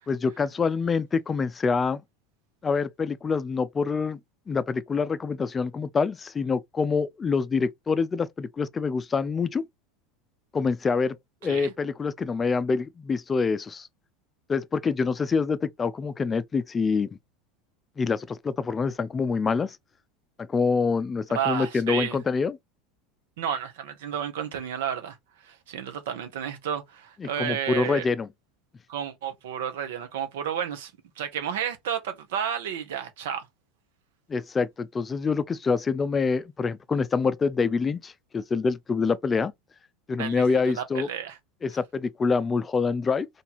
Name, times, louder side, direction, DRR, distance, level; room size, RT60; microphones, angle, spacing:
voice 1, 0.1-2.0 2.6-4.2 4.5-9.6 10.5-11.2 11.4-13.9 14.5-17.1 18.0-19.8 20.5-22.6 27.2-28.3 34.3-39.5 40.1-41.1 41.6-43.3, left 5 dB, 25° left, 0.4 m, -26 dB
voice 2, 11.4-11.7 21.3-22.2 23.4-25.2 25.4-28.0 28.9-30.9 31.2-33.5 40.2-41.4, right 9 dB, 75° right, 1.1 m, -31 dB
3.3 x 2.8 x 4.1 m
hypercardioid pair, 95°, 0 cm